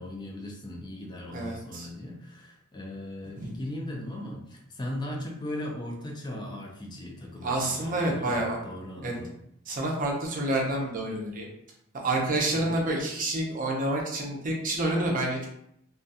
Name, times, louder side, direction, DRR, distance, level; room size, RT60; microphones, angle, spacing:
voice 1, 0.0-9.3 12.5-12.8, left 1 dB, 20° left, 0 dB, 0.4 m, -38 dB
voice 2, 1.3-1.9 3.4-3.5 7.4-8.6 9.0-9.1 9.7-11.5 11.9-15.5, right 1 dB, 40° right, -1 dB, 0.6 m, -28 dB
2.4 x 2.2 x 2.6 m, 0.75 s
head